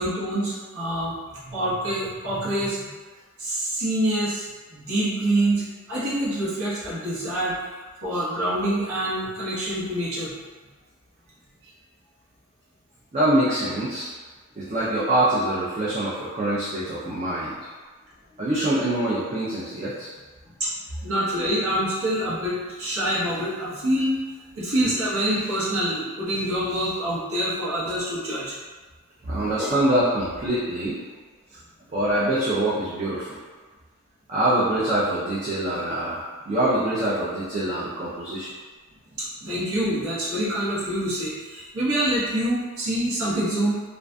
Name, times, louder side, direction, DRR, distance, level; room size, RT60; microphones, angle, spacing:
voice 1, 0.0-2.9 3.4-10.3 20.6-20.7 21.0-24.1 24.6-28.5 29.3-29.7 39.2-43.8, right 1 dB, 90° right, -9 dB, 0.9 m, -26 dB
voice 2, 13.1-14.1 14.6-17.5 18.4-20.1 29.3-31.0 31.9-33.4 34.3-38.5, right 1 dB, 30° right, -9 dB, 0.4 m, -24 dB
2.5 x 2.4 x 2.2 m, 1.4 s
head